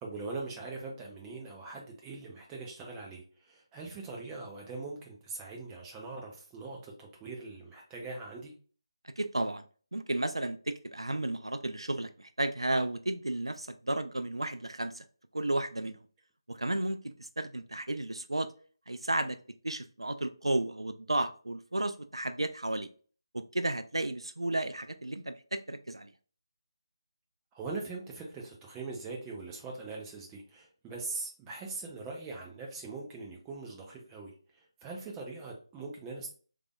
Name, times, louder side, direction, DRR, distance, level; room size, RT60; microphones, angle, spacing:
voice 1, 0.0-8.5 27.5-36.3, right 3 dB, 10° right, 0.6 m, -41 dB
voice 2, 9.2-9.6 9.9-15.0 15.3-16.0 16.5-18.5 18.9-19.4 19.6-22.9 23.3-26.1, right 1 dB, 85° right, 0.3 m, -33 dB
3.4 x 3.3 x 2.2 m
figure-of-eight pair, 155°, 3 cm